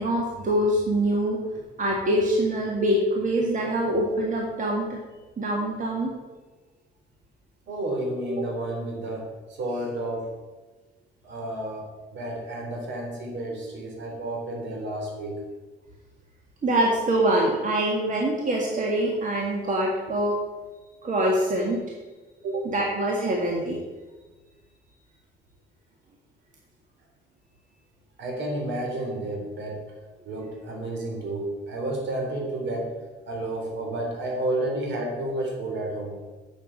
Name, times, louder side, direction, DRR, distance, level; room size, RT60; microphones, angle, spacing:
voice 1, 0.0-1.4 1.8-4.9 5.4-6.1 16.6-20.3 21.0-21.8 22.6-23.8, right 1 dB, 40° right, -2 dB, 2.0 m, -24 dB
voice 2, 7.7-9.3 9.6-10.3 11.2-15.4 22.4-22.7 28.2-29.8 30.2-32.9 33.3-36.2, right 1 dB, 65° right, 0 dB, 3.6 m, -31 dB
7.3 x 7.2 x 7.5 m, 1.3 s
cardioid pair, 90°, 20 cm